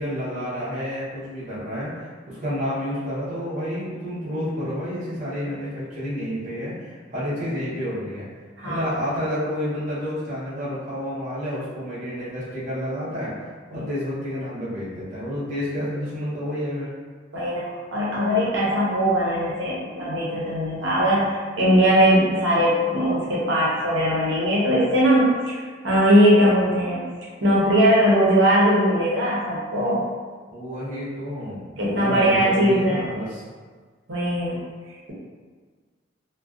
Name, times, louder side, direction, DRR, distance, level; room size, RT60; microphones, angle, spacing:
voice 1, 0.0-8.3 8.6-13.3 13.7-16.9 30.5-33.4, equal, 40° right, -10 dB, 0.8 m, -30 dB
voice 2, 17.3-27.0 27.4-30.0 31.8-33.0 34.1-34.6, equal, 80° right, -6 dB, 0.7 m, -20 dB
2.4 x 2.2 x 2.3 m, 1.5 s
head